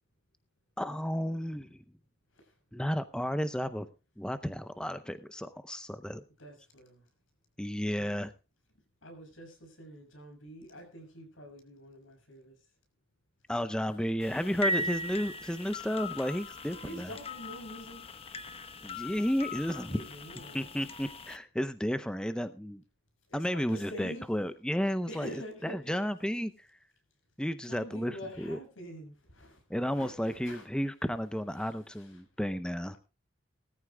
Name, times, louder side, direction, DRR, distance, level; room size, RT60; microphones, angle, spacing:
voice 1, 0.8-1.8 2.7-3.9 4.2-6.2 7.6-8.3 13.5-17.1 18.8-20.0 20.5-22.8 23.3-26.8 27.4-28.6 29.7-33.0, equal, 5° left, 0.6 m, -33 dB
voice 2, 6.4-7.0 8.0-8.2 9.0-12.5 13.9-14.0 14.6-15.0 16.8-18.0 19.7-20.7 23.3-24.3 25.1-26.0 27.6-29.6 29.8-30.7 31.6-32.2, equal, 75° left, 6.5 m, -46 dB
sound 1, 14.2-21.4, left 1 dB, 30° left, 1.1 m, -38 dB
20.0 x 14.5 x 2.2 m
head